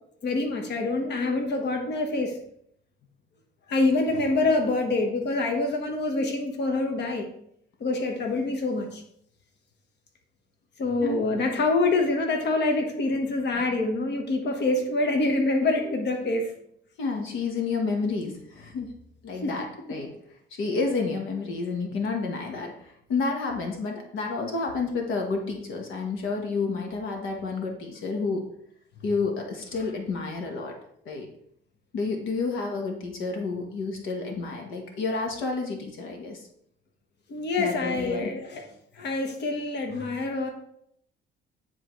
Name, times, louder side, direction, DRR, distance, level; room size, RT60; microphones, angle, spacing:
voice 1, 0.2-2.4 3.7-7.3 7.8-9.0 10.8-16.5 19.4-20.0 29.8-29.9 37.3-38.7 38.9-40.5, left 2 dB, 60° left, 3 dB, 1.2 m, -26 dB
voice 2, 17.0-18.9 19.2-20.1 20.5-28.4 29.0-30.7 31.0-31.3 31.9-36.5 37.6-38.3, left 4 dB, 80° left, 2 dB, 1.2 m, -30 dB
9.7 x 3.9 x 3.1 m, 0.70 s
cardioid pair, 90°, 20 cm